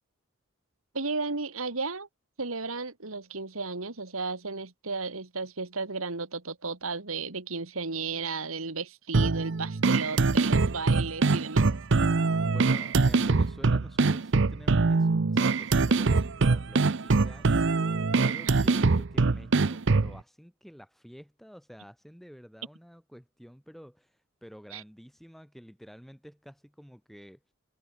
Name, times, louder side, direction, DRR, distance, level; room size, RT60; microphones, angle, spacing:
voice 1, 0.9-2.1 2.4-11.7 24.7-24.8, right 4 dB, 90° right, 2.4 m, -34 dB
sound 1, 9.1-20.2, right 3 dB, 60° right, 0.7 m, -23 dB
voice 2, 12.4-27.4, equal, ahead, 4.4 m, -49 dB
head